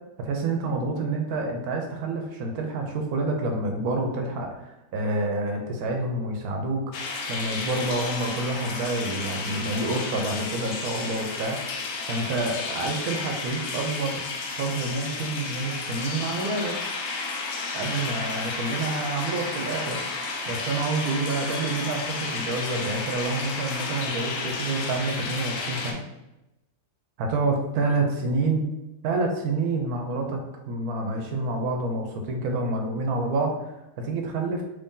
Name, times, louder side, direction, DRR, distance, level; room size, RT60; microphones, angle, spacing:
voice 1, 0.2-6.8 7.3-11.6 12.1-14.2 14.5-16.8 17.7-26.0 27.2-28.6 29.0-30.4 30.7-34.6, right 2 dB, 90° right, 2 dB, 1.1 m, -28 dB
sound 1, 6.9-25.9, left 4 dB, 85° left, 1.1 m, -32 dB
3.1 x 2.7 x 3.6 m, 0.92 s
omnidirectional pair, 1.6 m